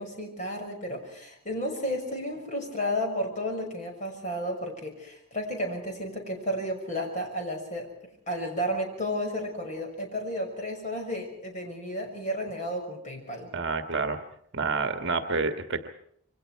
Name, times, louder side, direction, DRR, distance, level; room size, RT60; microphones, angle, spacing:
voice 1, 0.0-7.9 8.3-13.5, equal, 35° left, 3 dB, 6.1 m, -32 dB
voice 2, 13.5-14.2 14.5-15.9, right 4 dB, 55° right, 7 dB, 1.6 m, -28 dB
27.5 x 24.0 x 4.7 m, 0.66 s
head